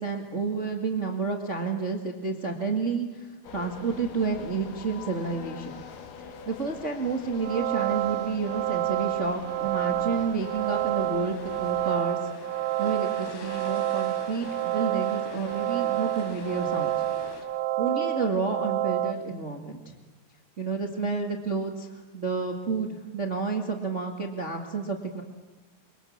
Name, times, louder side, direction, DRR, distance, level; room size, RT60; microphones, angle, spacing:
voice 1, 0.0-5.8 6.4-12.2 12.8-17.0 17.8-19.9 20.6-25.2, right 4 dB, 30° right, 3 dB, 1.4 m, -30 dB
sound 1, 3.4-12.0, left 6 dB, 65° left, 3.1 m, -44 dB
sound 2, 7.3-19.1, right 13 dB, 80° right, 2.8 m, -29 dB
sound 3, 9.3-17.4, left 3 dB, 80° left, 5.3 m, -46 dB
28.5 x 23.5 x 8.7 m, 1.2 s
omnidirectional pair, 4.3 m